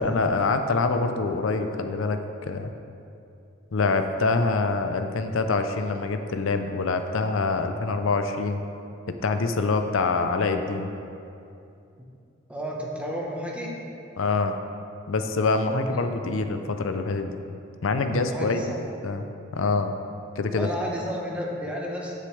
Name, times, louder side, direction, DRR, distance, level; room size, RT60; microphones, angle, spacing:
voice 1, 0.0-2.7 3.7-8.6 9.2-10.9 14.2-14.6 15.1-17.3 17.8-18.6 19.0-19.2 19.5-19.9 20.4-20.7, left 3 dB, 85° left, 7 dB, 0.6 m, -25 dB
voice 2, 12.5-13.8 15.7-16.0 18.2-18.8 20.5-22.1, equal, 5° right, -3 dB, 1.1 m, -32 dB
14.5 x 6.6 x 3.3 m, 2.6 s
head